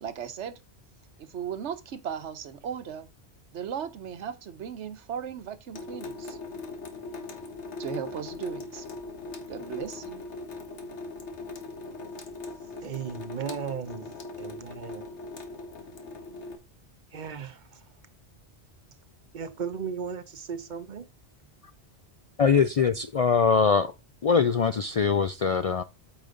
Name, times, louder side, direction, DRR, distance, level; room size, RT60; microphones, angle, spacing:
voice 1, 0.0-0.6 1.2-3.1 3.5-6.4 7.8-8.9 9.5-10.2, right 8 dB, 85° right, 1.1 m, -37 dB
Water tap faucet / Sink (filling or washing) / Drip, 5.7-16.6, left 3 dB, 90° left, 1.5 m, -40 dB
voice 2, 12.8-15.0 17.1-17.8 19.3-21.1, right 6 dB, 45° right, 0.9 m, -36 dB
voice 3, 22.4-23.9 24.2-25.8, left 5 dB, 55° left, 0.4 m, -22 dB
8.6 x 5.2 x 3.8 m
omnidirectional pair, 1.1 m